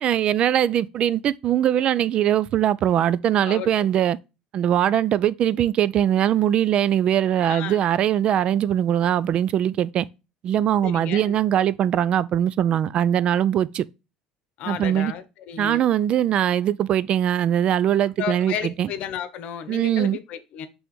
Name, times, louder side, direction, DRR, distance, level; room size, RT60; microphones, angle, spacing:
voice 1, 0.0-4.2 4.5-10.1 10.4-13.8 14.7-15.1 15.6-18.9 19.7-20.2, right 10 dB, 50° right, 0.4 m, -21 dB
voice 2, 3.4-3.8 7.4-7.9 10.8-11.3 14.6-15.8 18.2-20.7, left 9 dB, 60° left, 0.8 m, -33 dB
6.0 x 3.5 x 5.2 m
supercardioid pair, 110°, 2 cm